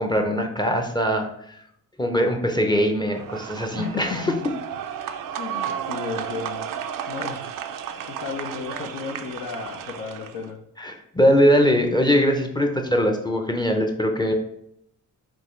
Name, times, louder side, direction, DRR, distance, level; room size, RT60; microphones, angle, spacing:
voice 1, 0.0-1.6 2.0-4.3 10.8-14.3, equal, 15° left, 3 dB, 0.5 m, -21 dB
sound 1, 3.1-10.5, right 9 dB, 70° right, 0.5 m, -33 dB
voice 2, 3.8-4.4 5.4-6.7 7.1-7.5 7.8-10.6, left 5 dB, 85° left, -1 dB, 0.7 m, -33 dB
5.2 x 2.6 x 3.1 m, 0.74 s
cardioid pair, 95°, 34 cm